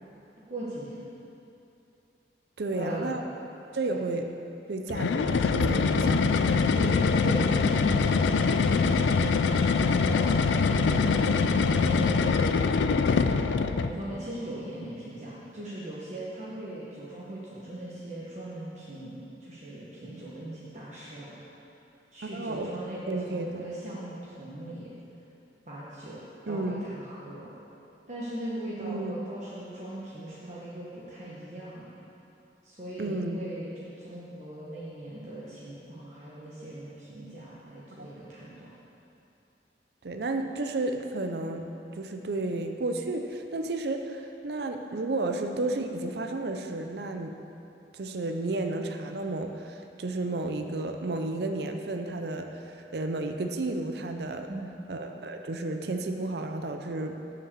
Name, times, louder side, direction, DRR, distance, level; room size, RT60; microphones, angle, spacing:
voice 1, 0.5-1.0 2.7-3.2 6.7-12.7 13.8-21.4 22.1-24.9 25.7-27.5 28.1-31.9 32.6-38.7 54.5-54.8, right 1 dB, 40° right, -8 dB, 1.1 m, -39 dB
voice 2, 2.6-3.2 3.7-4.3 4.7-6.6 22.3-22.7 23.1-23.6 26.5-26.8 28.8-29.1 33.0-33.4 38.0-38.1 40.0-47.4 47.9-54.5 54.9-57.3, right 2 dB, 65° right, 5 dB, 0.5 m, -32 dB
sound 1, 4.9-14.0, left 4 dB, 85° left, 0.4 m, -24 dB
7.4 x 5.9 x 6.7 m, 2.8 s
head